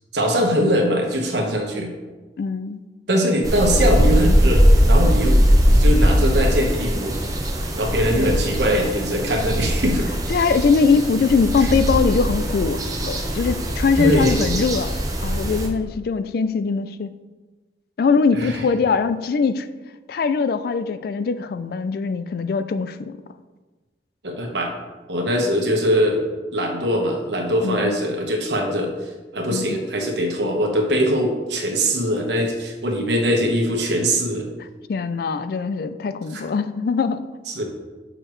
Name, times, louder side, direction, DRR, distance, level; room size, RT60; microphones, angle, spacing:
voice 1, 0.1-1.9 3.1-5.4 5.7-7.2 7.7-10.1 11.6-11.7 14.0-14.4 18.3-18.6 24.2-24.7 25.1-26.2 26.5-34.5 36.3-36.4 37.5-37.6, equal, 75° right, 2 dB, 1.2 m, -22 dB
voice 2, 2.4-2.8 8.1-8.4 10.3-17.1 18.0-19.7 20.1-23.2 27.6-28.0 29.5-29.8 34.9-37.2, left 5 dB, 55° left, 12 dB, 0.3 m, -22 dB
sound 1, 3.4-15.7, equal, 20° right, 0.7 m, -20 dB
6.6 x 6.4 x 3.1 m, 1.3 s
head